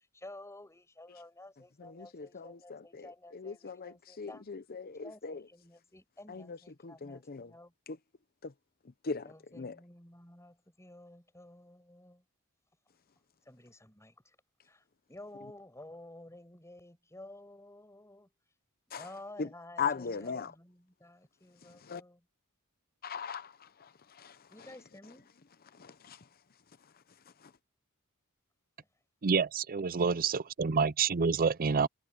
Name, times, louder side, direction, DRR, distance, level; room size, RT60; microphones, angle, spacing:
voice 1, 0.0-4.5 5.0-7.7 9.2-12.2 13.4-14.4 14.6-18.3 18.9-22.2 24.5-25.3, left 1 dB, 15° left, 7.0 m, -52 dB
voice 2, 1.8-5.5 6.3-6.6 6.8-7.5 7.9-8.0 8.4-8.5 8.8-9.8 18.9-19.1 19.4-19.5 19.8-20.5 21.6-22.0 23.0-24.7 25.7-26.3 26.8-27.5, left 5 dB, 45° left, 0.7 m, -40 dB
voice 3, 29.2-31.9, right 5 dB, 40° right, 0.5 m, -28 dB
head